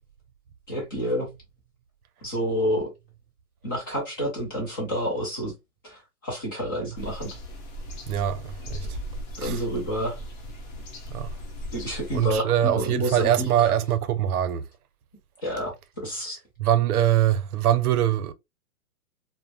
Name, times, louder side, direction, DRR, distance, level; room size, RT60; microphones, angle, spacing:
voice 1, 0.7-1.3 2.2-2.9 3.6-5.5 5.8-7.4 9.4-10.2 11.7-13.7 15.4-16.4, equal, 15° left, 0.4 m, -29 dB
sound 1, 6.9-12.4, equal, 30° left, 0.8 m, -37 dB
voice 2, 8.1-8.9 9.4-9.6 11.1-11.3 12.1-14.6 16.6-18.3, right 11 dB, 80° right, 0.6 m, -23 dB
2.9 x 2.0 x 2.3 m
hypercardioid pair, 150°, 44 cm